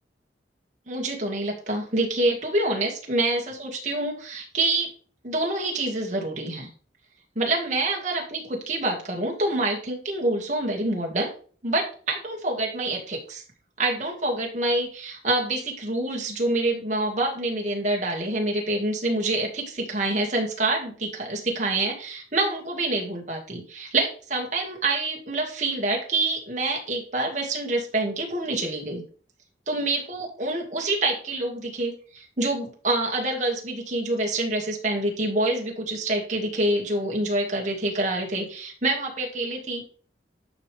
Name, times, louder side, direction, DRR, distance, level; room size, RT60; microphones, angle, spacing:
voice 1, 0.9-4.9 5.2-6.7 7.4-11.3 11.6-13.4 13.8-29.0 29.7-39.9, right 2 dB, 40° right, 0 dB, 2.3 m, -26 dB
11.5 x 5.1 x 3.6 m, 0.41 s
head